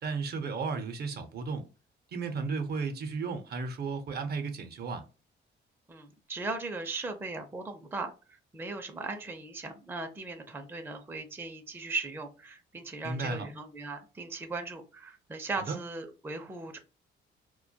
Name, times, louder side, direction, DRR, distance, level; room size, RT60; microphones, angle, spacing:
voice 1, 0.0-1.7 2.1-5.0 13.0-13.5 15.5-15.8, right 4 dB, 55° right, 0.6 m, -34 dB
voice 2, 5.9-16.8, right 3 dB, 10° right, 0.4 m, -38 dB
2.2 x 2.2 x 2.6 m
cardioid pair, 90°, 20 cm